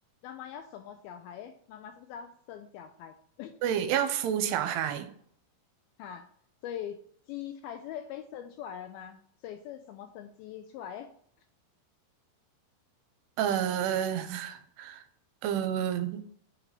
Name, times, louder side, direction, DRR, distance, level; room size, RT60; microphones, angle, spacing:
voice 1, 0.2-3.6 6.0-6.3 6.6-7.0 7.3-11.1, left 9 dB, 85° left, 7 dB, 2.2 m, -42 dB
voice 2, 3.6-5.1 13.4-15.0 15.4-16.2, right 9 dB, 85° right, 9 dB, 2.7 m, -29 dB
9.5 x 4.0 x 4.3 m, 0.64 s
omnidirectional pair, 4.8 m